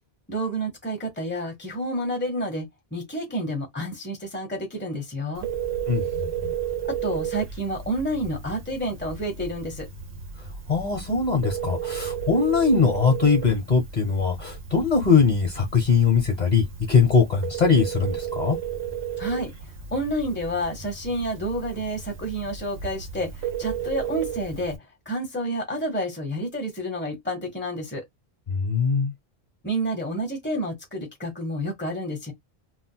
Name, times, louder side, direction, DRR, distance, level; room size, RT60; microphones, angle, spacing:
voice 1, 0.3-5.5 6.9-9.9 19.2-19.5 19.9-23.3 23.6-24.8 25.1-28.0 29.6-32.3, right 1 dB, 10° left, 1.2 m, -29 dB
Telephone, 5.3-24.8, right 8 dB, 65° right, 1.0 m, -33 dB
voice 2, 5.9-6.5 10.7-18.6 28.5-29.1, left 5 dB, 45° left, 1.1 m, -21 dB
3.7 x 2.3 x 2.2 m
omnidirectional pair, 1.1 m